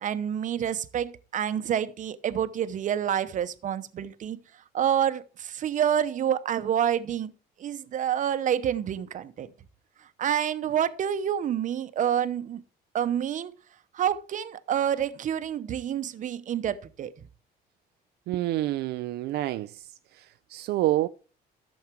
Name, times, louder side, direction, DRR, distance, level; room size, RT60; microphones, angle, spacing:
voice 1, 0.0-4.4 4.7-7.3 7.6-9.5 10.2-12.6 12.9-13.5 13.9-17.1, right 9 dB, 50° right, 0.9 m, -28 dB
voice 2, 18.3-19.9 20.1-21.1, right 15 dB, 75° right, 0.4 m, -28 dB
12.0 x 7.2 x 4.5 m
cardioid pair, 110°, 17 cm